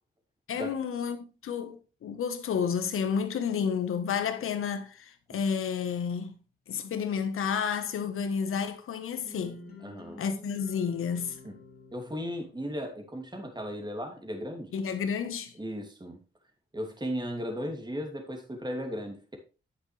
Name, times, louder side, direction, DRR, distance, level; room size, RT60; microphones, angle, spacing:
voice 1, 0.5-6.3 6.7-9.6 10.2-11.4 14.7-15.5, left 7 dB, 80° left, 1.3 m, -31 dB
sound 1, 9.2-13.2, left 3 dB, 45° left, 3.1 m, -50 dB
voice 2, 9.8-10.2 11.4-11.5 11.9-14.8 15.6-16.2 16.7-19.4, equal, 20° right, 2.7 m, -36 dB
9.6 x 7.9 x 3.3 m
cardioid pair, 60°, 21 cm